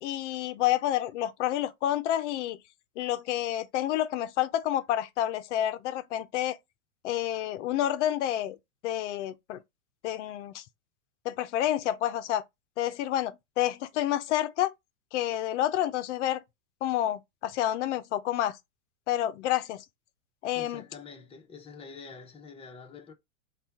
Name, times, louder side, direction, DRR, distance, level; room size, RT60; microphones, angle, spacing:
voice 1, 0.0-2.6 3.0-6.6 7.0-8.6 8.8-9.6 10.0-10.6 11.2-12.4 12.8-14.7 15.1-16.4 16.8-18.6 19.1-19.8 20.4-20.8, left 12 dB, 55° left, 0.6 m, -29 dB
voice 2, 20.5-23.1, left 5 dB, 15° left, 0.8 m, -46 dB
4.1 x 2.4 x 3.4 m
hypercardioid pair, 120°, 42 cm